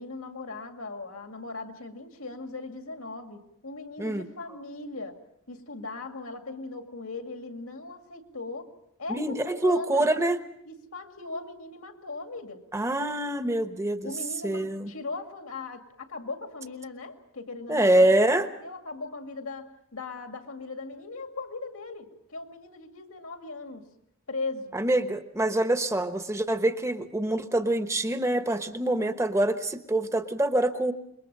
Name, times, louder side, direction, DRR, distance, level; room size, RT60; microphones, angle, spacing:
voice 1, 0.0-5.2 5.5-8.7 9.0-10.1 10.7-12.6 14.0-23.8 24.3-24.8, left 3 dB, 85° left, 5 dB, 2.2 m, -39 dB
voice 2, 9.1-10.4 12.7-14.1 14.4-14.9 17.7-18.5 24.7-30.9, right 1 dB, 15° right, 9 dB, 1.0 m, -25 dB
26.5 x 22.0 x 5.4 m, 0.76 s
head